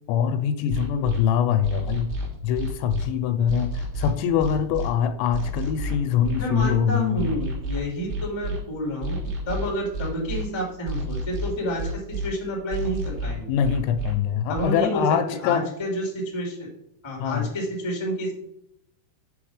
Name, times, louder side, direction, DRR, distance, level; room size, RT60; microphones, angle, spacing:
voice 1, 0.1-2.1 2.4-7.3 13.5-15.6 17.2-17.5, left 8 dB, 85° left, 9 dB, 2.9 m, -24 dB
sound 1, 0.7-1.2 1.6-3.1 3.5-4.9 5.3-6.7 7.2-8.6 9.0-10.4 10.9-12.3 12.7-14.1 14.6-14.7, right 2 dB, 70° right, 5.7 m, -29 dB
voice 2, 6.4-9.2 9.4-13.5 14.5-15.0 15.4-16.7 17.0-18.3, equal, 10° left, -2 dB, 1.3 m, -29 dB
7.9 x 6.7 x 4.9 m, 0.76 s
omnidirectional pair, 5.4 m